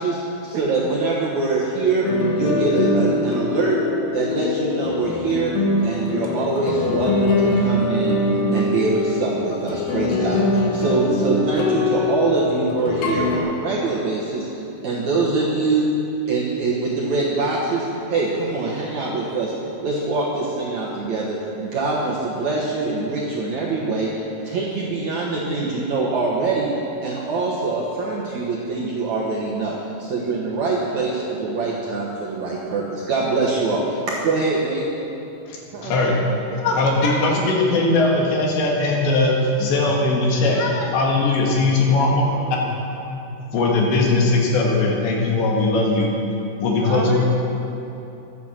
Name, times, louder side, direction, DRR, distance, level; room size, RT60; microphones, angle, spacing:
voice 1, 0.0-2.1 2.3-3.8 4.1-5.5 5.8-8.2 8.5-15.9 16.3-19.5 19.8-26.7 27.0-34.8, right 3 dB, 65° right, -5 dB, 1.8 m, -24 dB
voice 2, 0.5-0.9 35.7-36.8 41.9-42.6 46.8-47.3, right 5 dB, 90° right, 1 dB, 1.9 m, -33 dB
sound 1, 2.0-13.4, left 2 dB, 65° left, 2.6 m, -22 dB
voice 3, 35.5-36.1 36.6-42.6 42.9-43.2 43.5-46.1 46.6-47.2, left 2 dB, 80° left, -1 dB, 4.0 m, -19 dB
12.0 x 9.2 x 7.5 m, 2.9 s
omnidirectional pair, 5.1 m